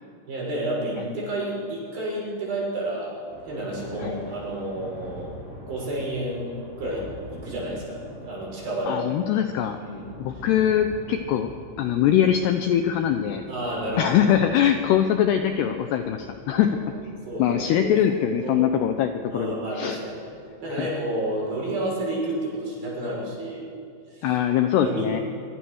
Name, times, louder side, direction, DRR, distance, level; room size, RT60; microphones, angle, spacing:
voice 1, 0.3-3.2 3.4-9.1 9.8-10.4 13.5-14.5 16.6-16.8 17.3-17.9 18.4-18.7 19.3-20.2 20.6-23.7 24.1-24.4 24.8-25.2, right 1 dB, 50° right, -4 dB, 8.2 m, -30 dB
Thunder, 3.3-21.0, equal, 40° left, 9.1 m, -44 dB
voice 2, 8.9-9.8 10.2-11.5 11.8-13.4 14.0-16.8 17.4-20.0 20.8-20.9 24.2-25.2, left 10 dB, 75° left, 7 dB, 2.5 m, -22 dB
24.5 x 24.0 x 6.5 m, 2.4 s
omnidirectional pair, 5.7 m